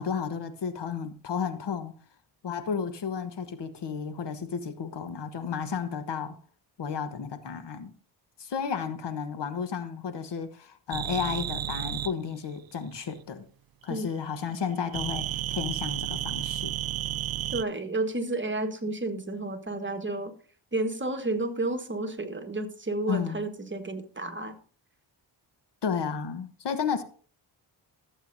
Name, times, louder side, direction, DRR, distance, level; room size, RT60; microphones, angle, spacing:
voice 1, 0.0-1.9 2.4-6.4 6.8-7.9 8.4-13.4 13.8-16.7 23.1-23.4 25.8-27.0, left 6 dB, 65° left, 1.2 m, -32 dB
sound 1, 10.9-12.1 14.9-17.6, right 12 dB, 55° right, 0.5 m, -32 dB
voice 2, 17.5-20.3 20.7-24.6, right 2 dB, 25° right, 1.4 m, -31 dB
15.0 x 8.0 x 2.6 m
cardioid pair, 75°, 45 cm